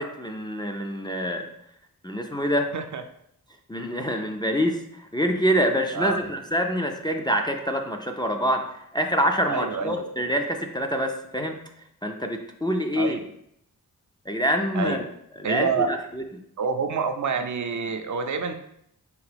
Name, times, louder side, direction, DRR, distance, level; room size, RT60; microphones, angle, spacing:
voice 1, 0.0-1.5 2.0-2.7 3.7-8.7 8.9-11.6 12.0-13.2 14.3-15.1 15.4-16.2, equal, 15° left, 3 dB, 0.3 m, -26 dB
voice 2, 9.5-10.1 13.0-13.2 14.7-15.0 15.4-15.9 16.6-18.5, right 5 dB, 55° right, 7 dB, 0.4 m, -27 dB
4.8 x 2.6 x 3.3 m, 0.73 s
wide cardioid pair, 90°, 35 cm